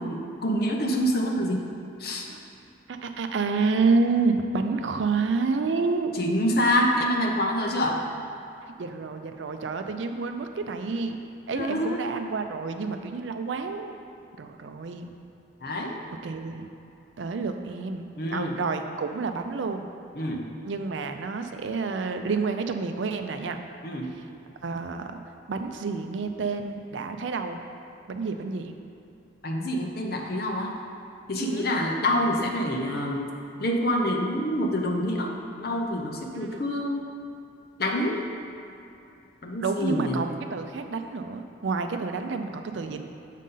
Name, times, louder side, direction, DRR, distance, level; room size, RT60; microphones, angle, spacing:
voice 1, 0.0-1.6 2.0-2.3 6.2-8.0 11.5-12.1 15.6-16.0 18.2-18.6 20.2-20.4 23.8-24.1 29.4-30.7 31.3-33.3 33.6-35.3 35.6-37.0 37.8-38.2 39.4-40.2, equal, 55° left, 1 dB, 0.7 m, -26 dB
voice 2, 2.9-6.2 8.8-14.0 14.4-15.1 16.2-16.7 17.2-18.0 18.3-19.9 20.6-23.6 24.6-25.2 25.5-27.6 28.1-28.7 31.4-31.7 36.3-36.7 39.6-43.0, right 4 dB, 80° right, 6 dB, 0.5 m, -29 dB
7.4 x 5.4 x 3.8 m, 2.8 s
head